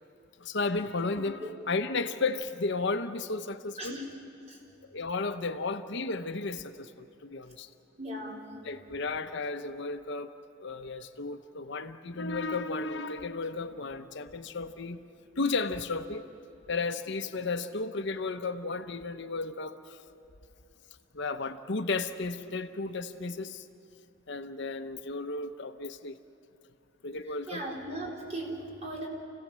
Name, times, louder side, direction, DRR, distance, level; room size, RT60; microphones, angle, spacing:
voice 1, 0.4-4.0 4.9-7.7 8.6-10.3 10.6-15.0 15.4-16.2 16.7-20.0 21.1-23.7 24.3-26.2 27.0-27.6, left 3 dB, 65° left, 8 dB, 0.9 m, -33 dB
voice 2, 3.8-4.1 4.5-4.6 8.0-8.5 27.3-29.1, right 1 dB, 35° right, -2 dB, 4.4 m, -38 dB
29.0 x 17.0 x 7.5 m, 3.0 s
head